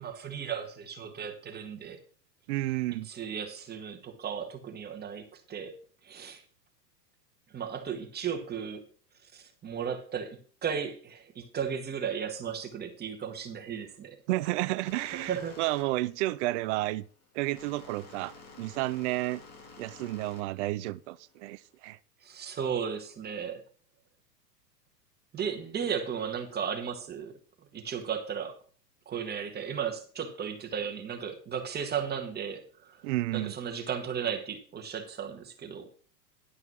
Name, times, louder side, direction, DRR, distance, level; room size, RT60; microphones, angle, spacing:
voice 1, 0.0-2.0 3.0-5.8 6.0-6.4 7.5-8.8 9.2-14.2 15.1-15.6 22.2-23.6 25.3-27.4 27.7-28.5 29.0-33.0 33.3-35.9, right 7 dB, 20° right, 1.7 m, -35 dB
voice 2, 2.5-3.1 14.3-17.0 17.3-19.4 19.8-22.0 33.0-33.5, right 18 dB, 45° right, 0.5 m, -31 dB
sound 1, 14.8-21.8, left 4 dB, 30° left, 2.8 m, -51 dB
11.0 x 5.7 x 6.2 m
hypercardioid pair, 115°, 50 cm